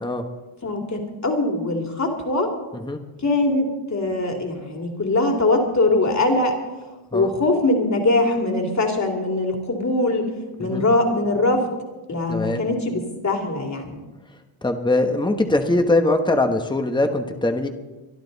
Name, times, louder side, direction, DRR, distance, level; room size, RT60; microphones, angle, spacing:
voice 1, 0.6-2.5 3.2-6.5 7.1-10.3 10.6-11.7 12.1-14.0, left 2 dB, 35° left, 2 dB, 2.9 m, -22 dB
voice 2, 12.3-12.6 14.6-17.7, left 2 dB, 10° left, 6 dB, 1.2 m, -21 dB
24.0 x 12.0 x 4.1 m, 1.2 s
wide cardioid pair, 120°, 49 cm